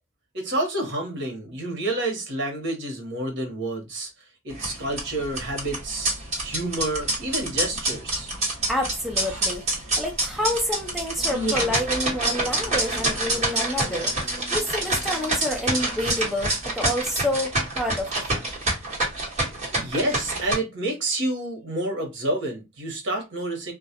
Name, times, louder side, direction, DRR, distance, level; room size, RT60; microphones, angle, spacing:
voice 1, 0.3-8.3 19.7-23.7, right 1 dB, 60° right, 1.0 m, -29 dB
sound 1, 4.5-20.5, right 2 dB, 35° right, 1.1 m, -27 dB
voice 2, 8.7-9.6 10.0-14.1 14.5-18.5, left 1 dB, ahead, 0.4 m, -28 dB
Electric guitar, 11.2-17.4 17.8-17.9, left 2 dB, 70° left, 0.8 m, -43 dB
2.3 x 2.0 x 2.7 m
head